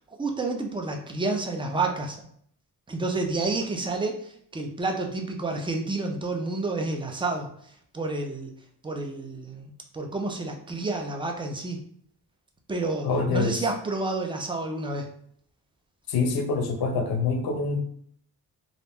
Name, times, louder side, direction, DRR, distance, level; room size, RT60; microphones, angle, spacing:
voice 1, 0.2-2.3 2.9-7.5 7.9-8.5 8.8-11.8 12.7-15.1, right 3 dB, 15° right, 2 dB, 0.3 m, -29 dB
voice 2, 13.0-13.6 16.1-17.8, left 4 dB, 70° left, 4 dB, 0.6 m, -25 dB
2.4 x 2.1 x 3.4 m, 0.65 s
wide cardioid pair, 120°, 39 cm